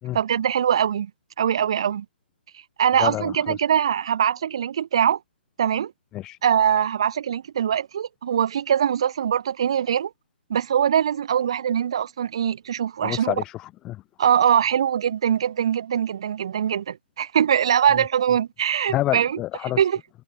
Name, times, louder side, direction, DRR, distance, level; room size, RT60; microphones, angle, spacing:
voice 1, 0.1-1.1 1.4-2.0 2.8-5.2 5.6-5.9 6.4-10.1 10.5-13.3 14.2-19.3 19.8-20.0, right 9 dB, 25° right, 1.4 m, -22 dB
voice 2, 3.0-3.6 6.1-6.4 13.0-14.0 17.9-18.0 18.9-19.9, left 15 dB, 10° left, 4.4 m, -28 dB
hypercardioid pair, 175°, 6 cm